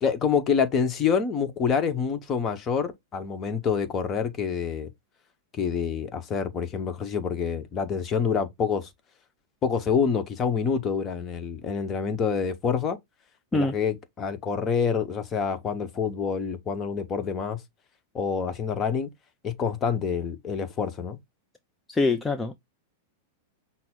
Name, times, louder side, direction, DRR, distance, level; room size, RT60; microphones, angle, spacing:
voice 1, 0.0-4.9 5.5-8.9 9.6-13.0 13.5-17.6 18.1-19.1 19.4-21.2, left 6 dB, 30° left, 1.0 m, -27 dB
voice 2, 21.9-22.6, left 3 dB, 10° left, 0.5 m, -24 dB
5.9 x 2.1 x 3.8 m
figure-of-eight pair, 95°, 0 cm